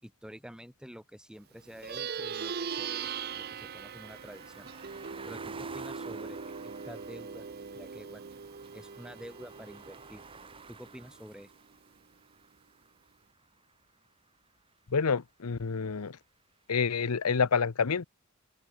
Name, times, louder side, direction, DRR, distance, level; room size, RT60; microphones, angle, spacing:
voice 1, 0.0-3.1 3.3-4.7 5.3-7.5 7.7-8.3 8.7-10.2 10.7-11.5, equal, 5° right, 3.1 m, -48 dB
Plucked string instrument, 1.7-11.4, right 6 dB, 45° right, 0.5 m, -40 dB
sound 1, 1.8-13.9, right 4 dB, 25° right, 2.3 m, -52 dB
voice 2, 14.9-16.2 16.7-18.0, left 5 dB, 90° left, 0.7 m, -28 dB
open air
head